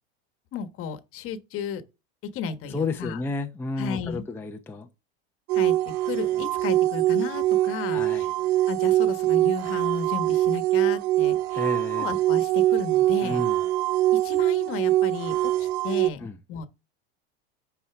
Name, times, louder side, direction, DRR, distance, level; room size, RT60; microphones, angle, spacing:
voice 1, 0.5-1.8 2.3-3.2 3.8-4.2 5.5-5.7 6.0-8.3 8.7-11.6 12.0-13.4 14.1-16.7, left 6 dB, 40° left, 1.3 m, -34 dB
voice 2, 2.7-4.9 7.9-8.3 11.5-12.1 13.2-13.6 16.2-16.4, left 3 dB, 5° left, 0.6 m, -31 dB
sound 1, 5.5-16.1, right 14 dB, 65° right, 0.5 m, -23 dB
10.5 x 4.3 x 3.5 m
supercardioid pair, 130°, 33 cm